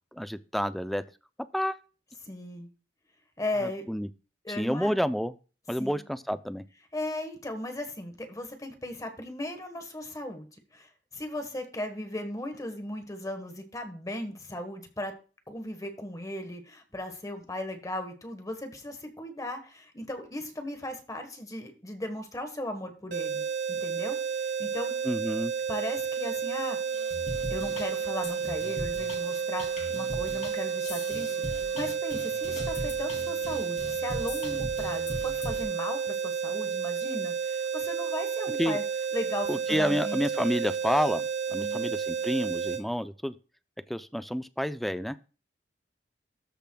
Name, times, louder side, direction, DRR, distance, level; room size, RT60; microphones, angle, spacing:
voice 1, 0.1-1.0 1.5-1.8 3.9-4.1 4.6-5.3 5.7-6.6 25.0-25.5 38.6-38.8 39.5-43.3 43.9-45.2, equal, ahead, 12 dB, 0.4 m, -29 dB
voice 2, 2.2-2.7 3.4-3.8 4.4-4.9 5.8-6.0 6.9-10.5 10.7-15.1 15.5-24.9 25.7-26.8 27.5-38.8 39.1-40.2 41.6-41.9, left 1 dB, 20° left, 6 dB, 1.3 m, -37 dB
sound 1, 23.1-42.8, right 6 dB, 70° right, 4.2 m, -31 dB
sound 2, 26.8-35.6, left 1 dB, 40° left, 2.9 m, -40 dB
13.5 x 6.9 x 2.3 m, 0.35 s
head